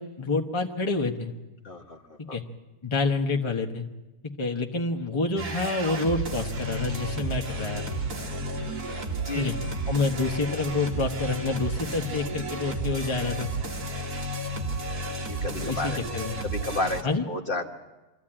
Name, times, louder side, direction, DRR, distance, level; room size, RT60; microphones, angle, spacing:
voice 1, 0.0-1.3 2.2-2.4 2.8-3.9 4.4-8.0 9.3-9.5 9.9-13.5 15.6-16.3 17.0-17.2, left 3 dB, 20° left, 2 dB, 1.2 m, -28 dB
voice 2, 1.6-2.0 2.3-2.4 8.7-8.8 9.2-9.5 15.3-16.0 16.4-17.0 17.3-17.7, left 2 dB, 40° left, 3 dB, 1.4 m, -31 dB
sound 1, 5.4-17.0, right 1 dB, 90° right, 2.4 m, -32 dB
24.5 x 14.5 x 8.9 m, 1.1 s
omnidirectional pair, 1.6 m